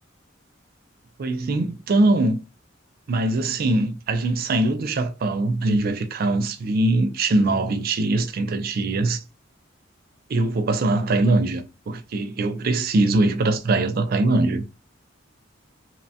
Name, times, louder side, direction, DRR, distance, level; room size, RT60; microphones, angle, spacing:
voice 1, 1.2-2.4 3.1-9.2 10.3-14.6, right 2 dB, 50° right, 0.4 m, -22 dB
2.8 x 2.1 x 2.7 m
head